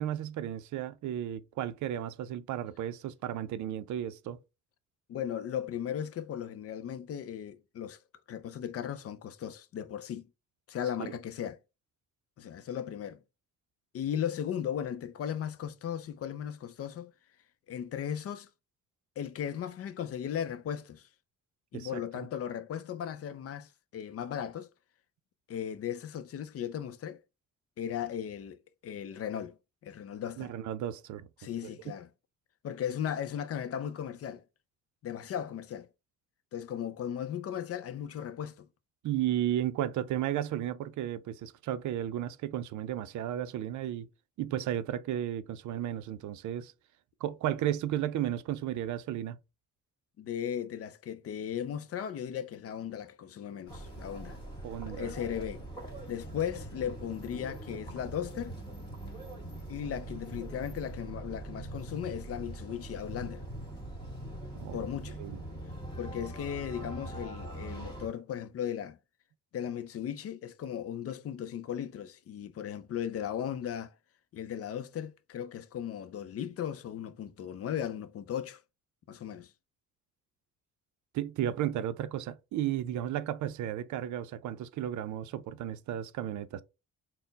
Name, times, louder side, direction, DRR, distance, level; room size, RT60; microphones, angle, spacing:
voice 1, 0.0-4.4 21.7-22.3 30.4-31.3 39.0-44.1 44.4-46.7 47.2-49.4 54.6-55.1 64.5-64.8 65.2-65.4 81.1-86.6, right 11 dB, 75° right, 0.5 m, -34 dB
voice 2, 5.1-8.0 8.3-10.3 10.7-11.6 12.4-13.2 13.9-17.1 17.7-18.5 19.2-21.1 21.7-24.7 25.5-27.2 27.8-28.6 28.8-29.6 29.8-30.5 31.4-32.1 32.6-34.4 35.0-35.9 36.5-38.7 50.2-54.4 54.9-55.6 56.1-58.6 59.7-63.4 64.7-65.2 66.0-69.0 69.5-73.9 74.3-78.6 79.1-79.5, left 9 dB, 50° left, 0.5 m, -36 dB
sound 1, 53.7-68.1, right 1 dB, 15° left, 1.8 m, -42 dB
4.2 x 2.1 x 3.9 m
cardioid pair, 135°, 30 cm